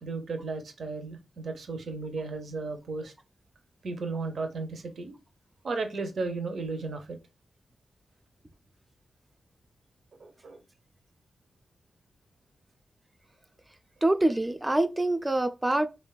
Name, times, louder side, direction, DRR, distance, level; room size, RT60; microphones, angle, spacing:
voice 1, 0.0-3.1 3.8-5.1 5.6-7.2 10.2-10.6, right 3 dB, 70° right, 0.5 m, -34 dB
voice 2, 14.0-15.9, right 1 dB, 15° right, 0.3 m, -25 dB
3.2 x 2.2 x 2.2 m
cardioid pair, 70°, 0 cm